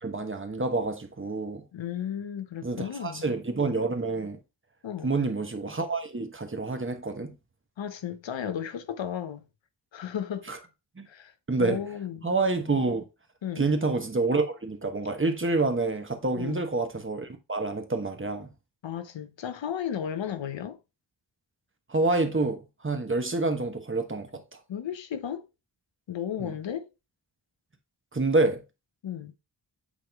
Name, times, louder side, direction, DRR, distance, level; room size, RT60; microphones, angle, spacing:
voice 1, 0.0-1.6 2.6-4.4 5.0-7.3 10.5-10.6 11.0-11.1 11.5-11.8 12.2-13.0 13.6-18.5 21.9-24.4 26.4-26.5 28.1-28.6, right 3 dB, 30° right, 1.1 m, -28 dB
voice 2, 1.7-3.2 4.8-5.2 7.8-9.4 9.9-10.5 11.1-11.3 11.6-12.3 13.4-13.6 16.4-16.7 18.8-20.8 24.7-25.5 26.1-26.9 29.0-29.3, left 9 dB, 85° left, 0.8 m, -34 dB
8.4 x 3.7 x 3.4 m
wide cardioid pair, 100°, 44 cm